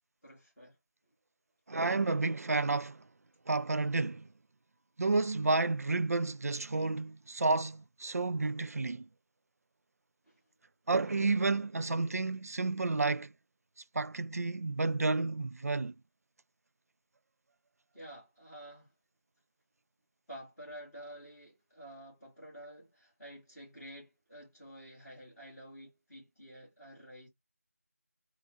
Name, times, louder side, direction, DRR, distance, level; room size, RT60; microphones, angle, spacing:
voice 1, 0.2-0.8 10.2-10.4 17.9-18.9 20.3-27.3, equal, 5° left, 1.7 m, -50 dB
voice 2, 1.7-3.0 3.5-4.3 5.0-9.0 10.9-13.3 13.9-15.9, right 3 dB, 70° right, 0.4 m, -31 dB
3.7 x 3.1 x 3.5 m
figure-of-eight pair, 180°, 8 cm